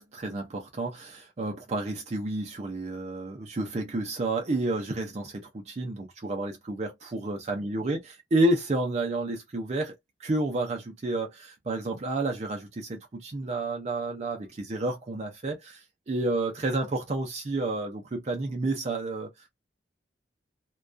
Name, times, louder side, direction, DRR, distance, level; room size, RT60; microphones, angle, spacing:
voice 1, 0.0-9.9 10.2-19.5, right 2 dB, 35° right, 0.4 m, -30 dB
2.2 x 2.2 x 2.4 m
head